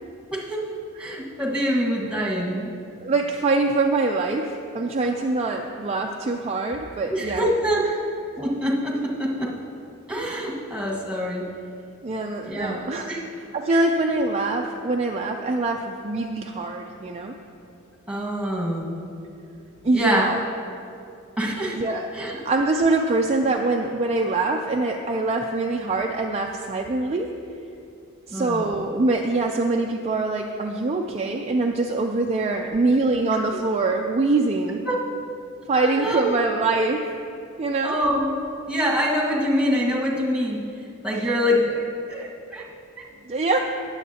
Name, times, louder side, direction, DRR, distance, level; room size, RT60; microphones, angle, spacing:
voice 1, 0.3-0.6 1.0-2.7 7.1-7.8 8.4-9.5 10.1-11.5 12.4-13.2 13.7-13.8 18.1-18.9 19.9-20.3 21.4-21.8 22.1-22.4 28.3-28.6 33.3-33.4 34.8-35.0 35.7-36.4 37.8-38.3 38.7-40.6 41.0-42.6, equal, 5° right, -3 dB, 1.6 m, -25 dB
voice 2, 3.0-7.4 12.0-13.1 13.5-17.4 19.8-20.4 21.8-22.1 22.4-27.4 28.3-34.8 35.7-37.1 37.6-38.0 41.1-41.3 43.3-43.6, right 3 dB, 30° right, 1 dB, 0.4 m, -24 dB
18.5 x 7.2 x 2.8 m, 2.5 s
head